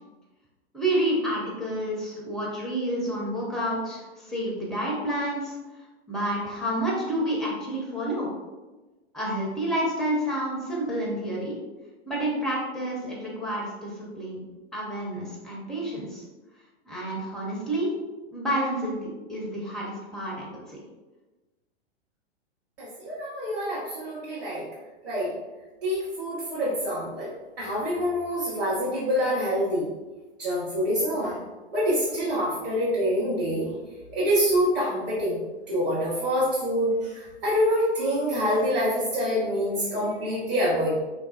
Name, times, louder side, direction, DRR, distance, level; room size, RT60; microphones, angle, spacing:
voice 1, 0.7-5.6 6.1-8.3 9.1-11.6 12.1-14.4 14.7-16.2 16.9-17.9 18.3-20.8, right 1 dB, ahead, -3 dB, 0.5 m, -29 dB
voice 2, 22.8-24.6 25.0-25.3 25.8-27.3 27.6-29.9 30.4-31.4 31.7-33.7 34.1-35.4 35.7-41.0, equal, 30° right, -9 dB, 0.9 m, -26 dB
3.1 x 2.3 x 2.3 m, 1.2 s
figure-of-eight pair, 105°, 33 cm